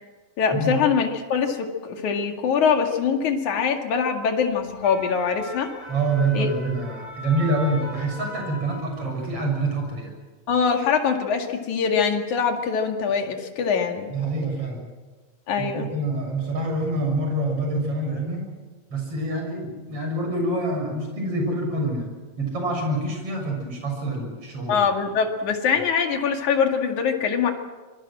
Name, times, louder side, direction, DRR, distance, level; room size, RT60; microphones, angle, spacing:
voice 1, 0.4-5.7 6.3-6.5 10.5-14.1 15.5-15.9 24.7-27.5, left 6 dB, 60° left, 4 dB, 3.4 m, -23 dB
sound 1, 4.6-9.3 9.7-9.9, equal, 20° left, 4.7 m, -39 dB
voice 2, 5.9-10.1 14.1-14.8 15.6-18.5 18.9-22.1 22.4-24.9, right 2 dB, 40° right, 2 dB, 7.6 m, -26 dB
26.0 x 23.0 x 7.7 m, 1.3 s
omnidirectional pair, 4.0 m